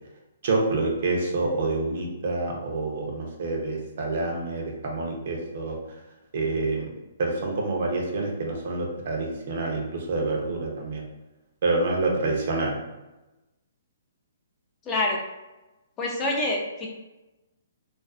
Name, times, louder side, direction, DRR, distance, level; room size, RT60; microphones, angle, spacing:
voice 1, 0.4-5.8 6.3-6.9 7.2-11.0 11.6-12.7, right 3 dB, 60° right, 0 dB, 0.6 m, -27 dB
voice 2, 14.9-15.2 16.0-16.9, left 2 dB, 25° left, -2 dB, 0.5 m, -26 dB
2.4 x 2.3 x 2.3 m, 1.0 s
hypercardioid pair, 140°, 0 cm